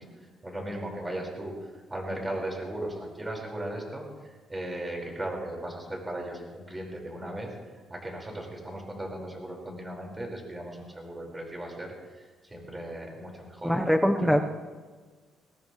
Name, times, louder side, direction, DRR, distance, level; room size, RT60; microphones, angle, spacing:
voice 1, 0.2-13.7 14.2-14.4, right 1 dB, 15° right, 0 dB, 5.2 m, -37 dB
voice 2, 13.6-14.4, equal, ahead, 4 dB, 1.1 m, -23 dB
23.5 x 18.0 x 3.3 m, 1.4 s
cardioid pair, 100°, 0 cm